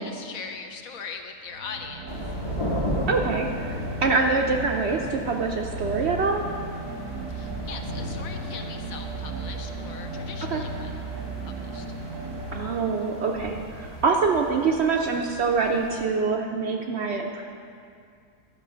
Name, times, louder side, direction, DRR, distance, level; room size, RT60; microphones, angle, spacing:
voice 1, 0.0-2.1 7.3-10.9 11.4-11.9, left 5 dB, 70° left, 5 dB, 1.2 m, -40 dB
sound 1, 1.5-13.4, right 2 dB, 90° right, 1.8 m, -35 dB
sound 2, 2.1-16.0, left 1 dB, 25° left, 0.8 m, -37 dB
voice 2, 3.1-6.4 10.4-10.6 12.5-17.4, right 4 dB, 60° right, 2 dB, 0.7 m, -25 dB
11.5 x 5.4 x 6.7 m, 2.3 s
omnidirectional pair, 1.6 m